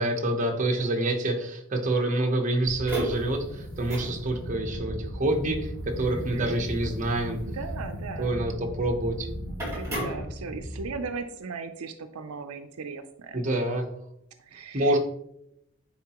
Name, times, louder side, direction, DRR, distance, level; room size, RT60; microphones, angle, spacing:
voice 1, 0.0-7.4 8.2-9.3 13.3-13.9 14.7-15.0, right 1 dB, 35° right, 2 dB, 0.9 m, -27 dB
sound 1, 2.7-10.9, equal, 10° right, 2.1 m, -35 dB
voice 2, 6.0-6.6 7.4-8.4 9.5-13.4 14.5-15.0, right 4 dB, 80° right, 8 dB, 0.5 m, -38 dB
9.4 x 4.0 x 2.9 m, 0.76 s
head